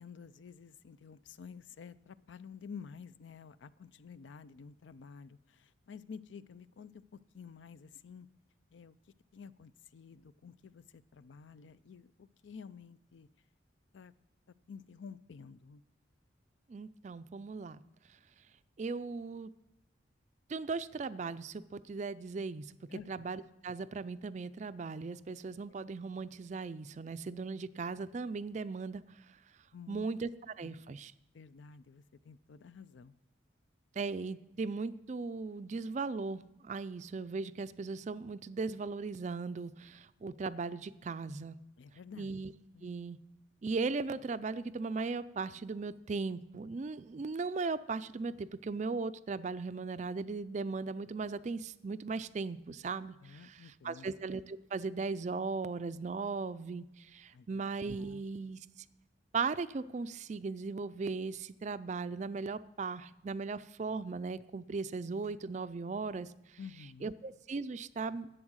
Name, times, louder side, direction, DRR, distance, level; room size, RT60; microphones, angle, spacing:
voice 1, 0.0-8.3 8.7-8.9 9.3-13.3 13.9-14.1 14.7-15.8 22.9-23.1 29.7-30.1 30.6-30.8 31.3-33.2 41.8-42.3 42.7-42.9 53.2-54.1 57.3-57.6 58.0-58.2 66.6-67.1, left 6 dB, 75° left, 16 dB, 0.4 m, -51 dB
voice 2, 16.7-17.8 18.8-19.5 20.5-22.7 23.1-29.0 29.9-31.1 34.0-41.6 42.2-42.5 42.8-43.2 43.6-58.6 59.3-66.3 67.0-68.3, right 4 dB, 40° right, 14 dB, 0.3 m, -38 dB
11.0 x 8.0 x 6.3 m, 0.97 s
head